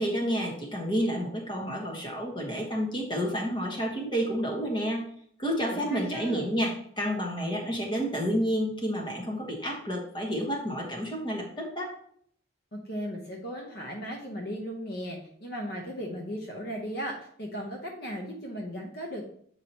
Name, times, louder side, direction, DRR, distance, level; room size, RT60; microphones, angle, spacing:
voice 1, 0.0-5.0 5.4-11.9, equal, 25° left, 0 dB, 1.3 m, -30 dB
voice 2, 5.7-6.5 12.7-19.3, equal, 50° left, 0 dB, 0.9 m, -36 dB
7.8 x 4.8 x 2.9 m, 0.63 s
head